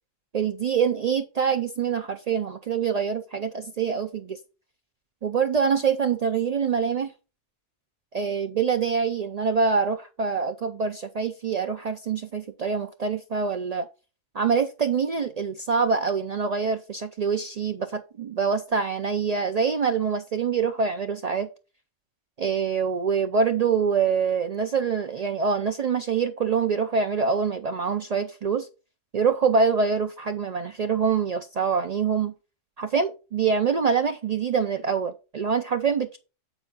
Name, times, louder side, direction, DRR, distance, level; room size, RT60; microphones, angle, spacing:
voice 1, 0.3-4.4 5.2-7.1 8.1-13.9 14.3-21.5 22.4-28.7 29.1-32.3 32.8-36.2, right 6 dB, 80° right, 0.3 m, -25 dB
8.0 x 4.4 x 3.9 m
omnidirectional pair, 1.3 m